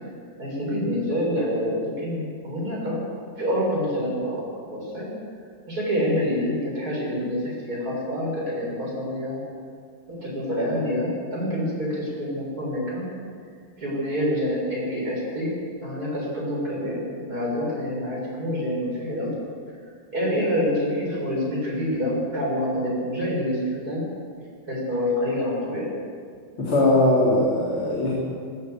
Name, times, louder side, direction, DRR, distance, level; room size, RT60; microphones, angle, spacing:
voice 1, 0.4-3.0 3.4-5.1 5.7-9.4 10.1-13.1 13.8-19.3 20.1-24.0 24.7-25.9, equal, 40° right, -4 dB, 7.9 m, -27 dB
voice 2, 26.6-28.1, left 1 dB, 75° left, -6 dB, 4.8 m, -20 dB
19.0 x 17.5 x 8.2 m, 2.2 s
omnidirectional pair, 2.4 m